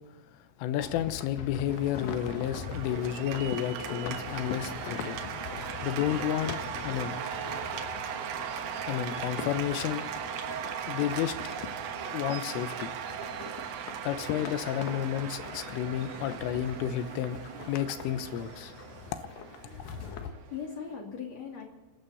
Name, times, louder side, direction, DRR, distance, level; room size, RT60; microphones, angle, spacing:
voice 1, 0.6-5.2 5.8-6.5 6.8-7.1 8.9-10.0 10.9-11.4 12.1-12.9 14.0-17.4 17.7-18.7, left 11 dB, 90° left, 10 dB, 3.5 m, -31 dB
sound 1, 0.8-20.3, left 7 dB, 70° left, 2.3 m, -42 dB
Cheering / Applause, 1.7-21.0, right 8 dB, 80° right, 3.9 m, -38 dB
voice 2, 19.8-21.6, left 7 dB, 40° left, 1 dB, 2.9 m, -40 dB
28.0 x 12.5 x 4.2 m, 1.1 s
omnidirectional pair, 5.7 m